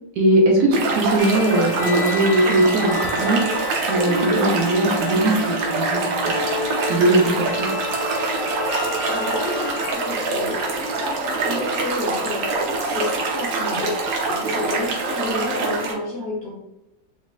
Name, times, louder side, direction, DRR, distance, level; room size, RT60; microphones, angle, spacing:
voice 1, 0.1-3.5 3.8-6.4 6.8-7.7, right 1 dB, 70° right, 0 dB, 1.0 m, -20 dB
sound 1, 0.7-15.9, right 3 dB, 90° right, 1.5 m, -25 dB
sound 2, 1.2-9.9, left 3 dB, 65° left, 0.9 m, -30 dB
voice 2, 8.8-14.0 14.3-16.5, left 2 dB, 80° left, -4 dB, 0.6 m, -30 dB
5.0 x 2.4 x 2.2 m, 0.91 s
omnidirectional pair, 2.0 m